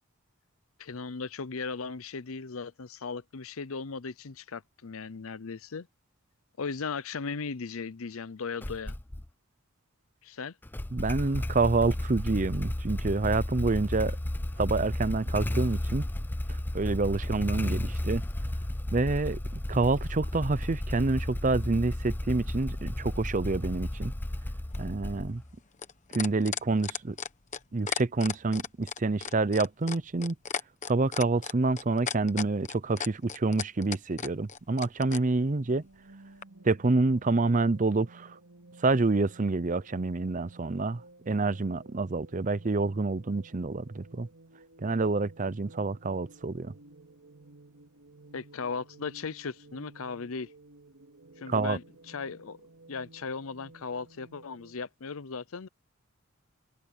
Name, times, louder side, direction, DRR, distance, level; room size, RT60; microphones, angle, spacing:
voice 1, 0.8-5.9 6.6-8.9 10.2-10.5 48.3-50.5 51.4-52.6 52.9-55.7, left 4 dB, 75° left, 0.7 m, -37 dB
Motorcycle / Engine starting, 8.6-9.3 10.6-25.5, left 1 dB, 10° left, 0.4 m, -33 dB
voice 2, 10.9-14.2 14.6-16.1 16.7-18.2 18.9-24.1 24.8-25.4 26.1-27.2 27.7-30.3 30.9-35.8 36.6-38.4 38.8-44.3 44.8-46.7 51.5-51.8, right 3 dB, 35° right, 0.6 m, -27 dB
sound 1, 24.7-35.2 36.4-36.5, left 7 dB, 35° left, 1.1 m, -35 dB
sound 2, 35.6-54.8, right 2 dB, 90° right, 2.6 m, -55 dB
head